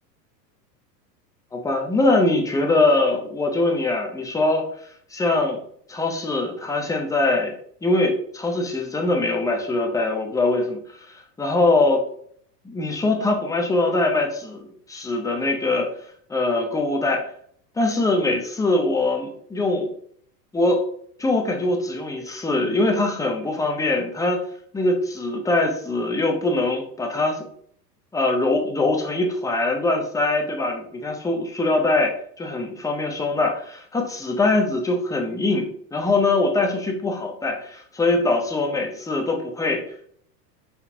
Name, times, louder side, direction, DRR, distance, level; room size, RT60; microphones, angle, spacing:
voice 1, 1.5-4.7 5.1-5.6 5.9-7.5 7.8-12.0 12.6-15.9 16.3-17.3 17.8-19.9 20.5-20.8 21.2-24.4 24.7-27.4 28.1-39.8, left 2 dB, 5° left, 2 dB, 0.7 m, -22 dB
4.2 x 3.9 x 2.7 m, 0.63 s
hypercardioid pair, 100°, 50 cm